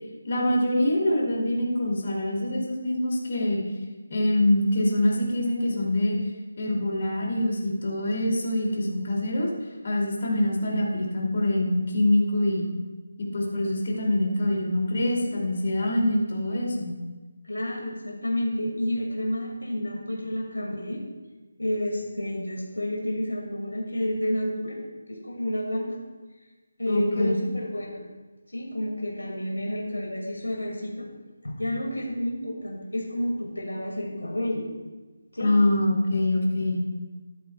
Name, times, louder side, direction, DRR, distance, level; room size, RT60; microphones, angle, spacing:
voice 1, 0.2-3.6 4.1-6.2 6.6-9.5 9.8-12.7 13.3-16.9 26.9-27.3 35.4-36.9, left 1 dB, 45° left, -2 dB, 2.7 m, -24 dB
voice 2, 17.4-21.0 21.6-24.8 25.1-26.0 26.8-28.1 28.5-31.1 31.4-34.7 35.3-35.5, left 1 dB, 80° left, -1 dB, 2.2 m, -30 dB
13.0 x 11.5 x 2.3 m, 1.2 s
figure-of-eight pair, 155°, 0 cm